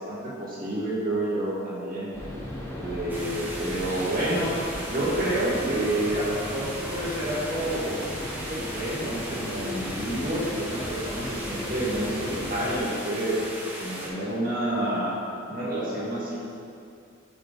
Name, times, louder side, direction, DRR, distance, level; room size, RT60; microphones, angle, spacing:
voice 1, 0.0-2.1 2.8-4.6 4.9-8.0 8.3-13.4 13.8-15.1 15.5-16.4, right 1 dB, 45° right, -7 dB, 1.9 m, -29 dB
sound 1, 2.1-12.8, left 1 dB, 15° left, 1.0 m, -36 dB
sound 2, 3.1-14.1, equal, 10° right, 1.1 m, -37 dB
7.8 x 5.8 x 4.0 m, 2.4 s
head